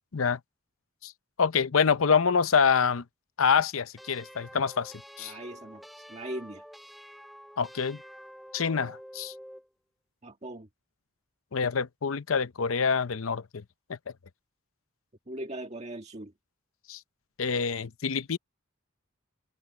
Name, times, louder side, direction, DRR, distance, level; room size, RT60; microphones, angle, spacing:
voice 1, 1.4-3.0 3.4-5.3 7.6-8.0 8.5-9.3 11.5-13.6 13.9-14.0 16.9-17.0 17.4-18.4, left 6 dB, 75° left, 0.7 m, -26 dB
sound 1, 4.0-9.7, equal, ahead, 0.8 m, -48 dB
voice 2, 5.2-5.8 6.1-6.6 10.2-10.7 15.3-16.3, right 1 dB, 35° right, 1.7 m, -39 dB
head